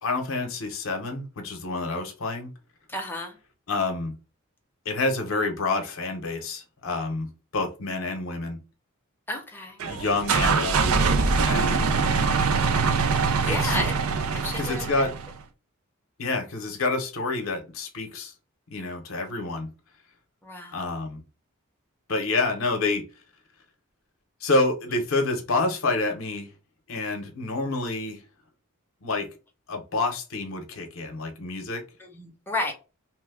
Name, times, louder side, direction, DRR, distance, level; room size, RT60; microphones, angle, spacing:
voice 1, 0.0-2.5 3.7-4.2 4.9-8.6 9.8-11.1 11.4-11.9 13.5-13.8 14.3-15.1 16.2-18.3 18.7-19.7 20.7-21.2 22.1-23.0 24.4-26.5 26.9-28.2 29.0-29.3 29.7-31.8, left 3 dB, 70° left, 0.7 m, -28 dB
voice 2, 2.9-3.3 9.3-9.8 11.5-11.8 13.4-14.0 14.3-14.9 20.4-20.8 32.0-32.7, left 2 dB, 10° left, 0.7 m, -32 dB
sound 1, 9.8-15.4, right 4 dB, 80° right, 0.5 m, -23 dB
2.9 x 2.2 x 3.3 m
head